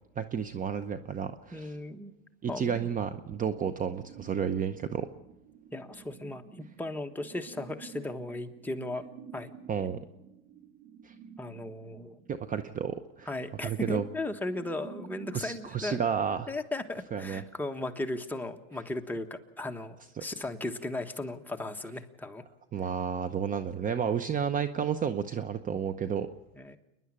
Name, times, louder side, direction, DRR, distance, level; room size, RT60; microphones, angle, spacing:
voice 1, 0.2-1.7 2.4-5.1 9.7-10.0 11.0-11.1 12.3-13.3 13.6-14.0 15.3-16.5 17.1-17.4 20.2-20.3 22.7-26.3, right 7 dB, 25° right, 10 dB, 0.8 m, -31 dB
voice 2, 1.5-2.1 2.5-2.9 5.7-9.0 9.3-9.5 11.4-12.2 13.3-16.0 16.5-22.4 26.6-26.8, left 2 dB, 5° left, 4 dB, 1.4 m, -36 dB
sound 1, 4.0-15.5, right 5 dB, 70° right, 3.3 m, -51 dB
28.5 x 11.0 x 8.8 m, 0.92 s
supercardioid pair, 115°, 33 cm